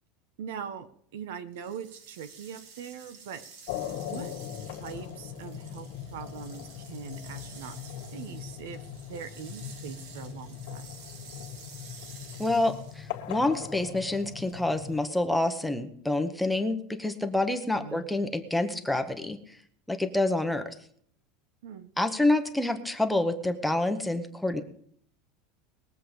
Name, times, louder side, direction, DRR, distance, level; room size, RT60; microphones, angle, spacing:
voice 1, 0.4-3.4 4.0-4.3 4.7-8.8 9.1-10.9 17.7-18.1 21.6-21.9, right 8 dB, 85° right, 12 dB, 1.4 m, -42 dB
sound 1, 1.5-13.2, right 5 dB, 70° right, 2.7 m, -51 dB
sound 2, 3.7-15.0, left 10 dB, 65° left, 1.8 m, -40 dB
voice 2, 12.4-19.4 19.9-20.7 22.0-24.6, left 2 dB, ahead, 6 dB, 0.9 m, -27 dB
20.5 x 7.7 x 5.1 m, 0.63 s
supercardioid pair, 170°, 0 cm